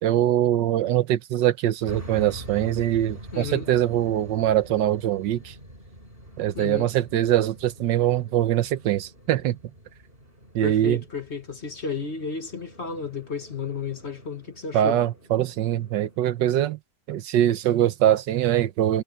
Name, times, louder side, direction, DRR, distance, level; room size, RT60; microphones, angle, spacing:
voice 1, 0.0-5.5 6.4-9.6 10.5-11.0 14.7-16.8 17.1-19.0, right 12 dB, 75° right, 1.4 m, -23 dB
sound 1, 1.9-16.7, equal, 30° right, 6.9 m, -45 dB
voice 2, 3.3-3.7 6.5-6.9 10.6-15.0, left 5 dB, 40° left, 1.7 m, -33 dB
omnidirectional pair, 2.0 m